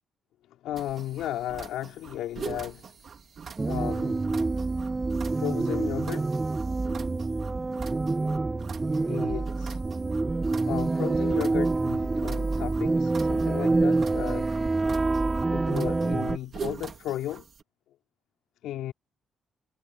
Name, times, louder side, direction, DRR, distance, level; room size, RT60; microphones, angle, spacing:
voice 1, 0.5-2.8 3.6-4.2 5.4-6.3 9.1-9.8 10.7-14.5 15.5-17.5 18.6-18.9, left 13 dB, 85° left, 3.5 m, -35 dB
sound 1, 0.8-17.6, right 6 dB, 50° right, 3.2 m, -44 dB
sound 2, 3.6-16.4, right 3 dB, 20° right, 1.4 m, -27 dB
cardioid pair, 90°, 0 cm